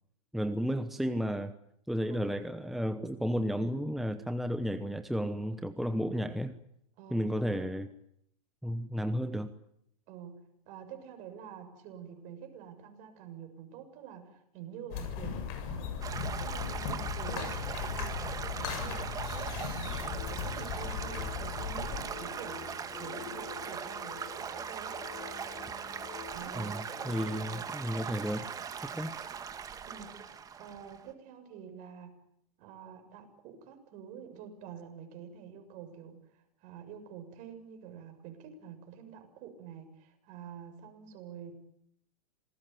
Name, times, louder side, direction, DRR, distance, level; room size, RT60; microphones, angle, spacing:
voice 1, 0.3-1.5 1.9-6.6 7.1-7.9 8.6-9.5 26.6-28.5 28.8-29.2, equal, ahead, 10 dB, 1.0 m, -33 dB
voice 2, 7.0-7.8 10.1-22.6 23.0-25.0 26.3-27.7 29.9-32.2 32.6-41.6, right 8 dB, 40° right, 6 dB, 7.0 m, -48 dB
sound 1, 14.9-22.0, left 7 dB, 45° left, 7.5 m, -37 dB
Stream / Gurgling / Trickle dribble, 16.0-31.1, right 7 dB, 20° right, 2.1 m, -40 dB
sound 2, 19.9-27.4, left 9 dB, 30° left, 6.1 m, -48 dB
27.0 x 20.0 x 9.3 m, 0.75 s
hypercardioid pair, 130°, 19 cm